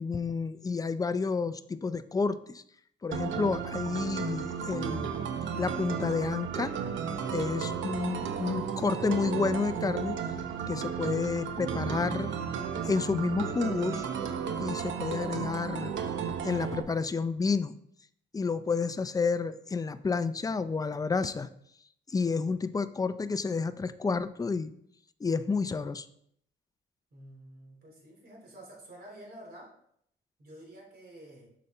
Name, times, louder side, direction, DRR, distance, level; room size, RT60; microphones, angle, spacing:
voice 1, 0.0-2.6 3.0-5.1 5.6-6.7 7.3-10.2 10.7-12.3 12.8-14.1 14.6-15.9 16.4-17.7 18.3-21.5 22.1-24.7 25.2-26.1, left 4 dB, 20° left, 13 dB, 0.4 m, -30 dB
sound 1, 3.1-16.8, right 7 dB, 70° right, 0.8 m, -34 dB
voice 2, 27.1-29.7 30.4-31.5, right 1 dB, 50° right, -1 dB, 3.1 m, -49 dB
6.6 x 5.1 x 4.2 m, 0.69 s
cardioid pair, 90°, 20 cm